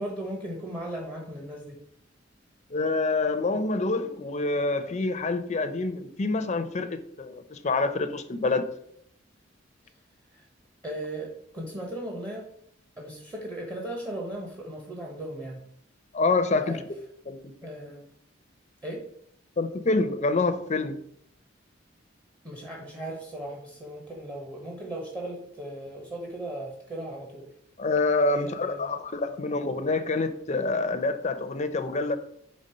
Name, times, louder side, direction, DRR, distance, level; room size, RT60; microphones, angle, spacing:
voice 1, 0.0-1.8 10.3-10.4 10.8-12.5 13.0-15.6 16.6-16.8 17.6-18.0 18.8-19.0 22.4-27.5 28.3-29.0, right 1 dB, 20° right, -1 dB, 1.0 m, -37 dB
voice 2, 2.7-8.6 16.1-16.8 17.3-17.4 19.6-21.0 27.8-32.2, left 3 dB, 35° left, 9 dB, 0.5 m, -27 dB
5.3 x 3.4 x 5.5 m, 0.68 s
head